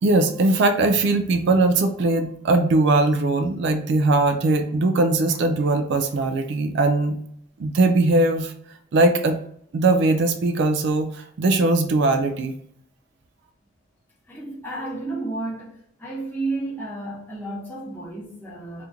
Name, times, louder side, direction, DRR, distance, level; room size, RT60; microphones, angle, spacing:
voice 1, 0.0-7.1 7.6-8.5 8.9-9.4 9.7-12.5, right 2 dB, 55° right, 0.3 m, -20 dB
voice 2, 14.3-18.9, right 2 dB, 10° left, 0.8 m, -32 dB
2.9 x 2.5 x 3.5 m
head